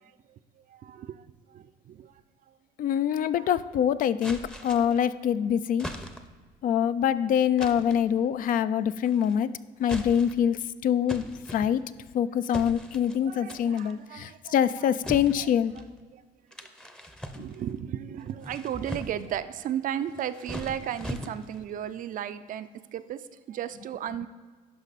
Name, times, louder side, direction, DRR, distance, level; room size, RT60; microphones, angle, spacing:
voice 1, 0.0-2.1 2.5-2.6 3.3-3.5 13.2-15.5 16.1-16.2 17.3-24.3, right 10 dB, 55° right, 12 dB, 0.5 m, -35 dB
voice 2, 2.8-5.9 6.6-9.5 9.8-11.3 11.5-11.8 12.1-15.7, left 9 dB, 55° left, 14 dB, 0.4 m, -25 dB
sound 1, 4.2-5.1 5.8-6.4 7.6-8.1 9.0-9.4 9.8-10.5 11.1-12.1 12.5-13.2 13.5-13.9 15.0-15.9 16.5-17.8 18.3-19.3 20.1-21.7, equal, 5° left, 0.7 m, -40 dB
11.5 x 5.3 x 4.1 m, 1.4 s
cardioid pair, 110°, 17 cm